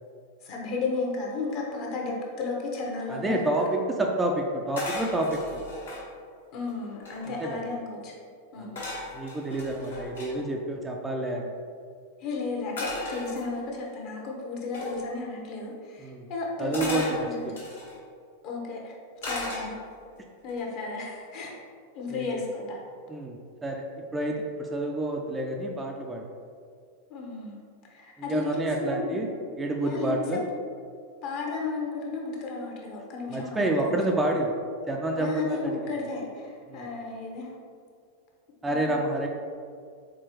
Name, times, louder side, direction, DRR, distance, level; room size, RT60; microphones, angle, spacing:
voice 1, 0.4-3.5 6.5-8.1 8.5-8.8 12.2-17.5 18.4-18.9 19.2-19.7 20.4-21.5 21.9-22.8 27.1-27.6 27.9-29.2 29.8-30.2 30.5-30.6 31.2-34.0 35.2-37.5 38.6-39.0, left 3 dB, 40° left, -1 dB, 1.0 m, -33 dB
voice 2, 3.1-5.6 7.3-7.6 8.6-8.8 9.1-11.5 16.0-16.3 16.6-17.1 17.4-17.6 22.1-22.3 23.1-26.2 28.3-29.3 29.6-30.4 33.3-34.5 34.9-35.8 36.7-36.9 38.6-39.3, right 1 dB, 15° right, 0 dB, 0.4 m, -29 dB
sound 1, 4.8-6.0 6.6-6.7 6.9-7.5 8.8-10.3 12.8-13.8 14.7-15.0 16.7-18.0 19.2-20.0 20.5-20.8, left 2 dB, 70° left, 1.5 m, -36 dB
4.4 x 3.9 x 3.1 m, 2.2 s
figure-of-eight pair, 90°, 0 cm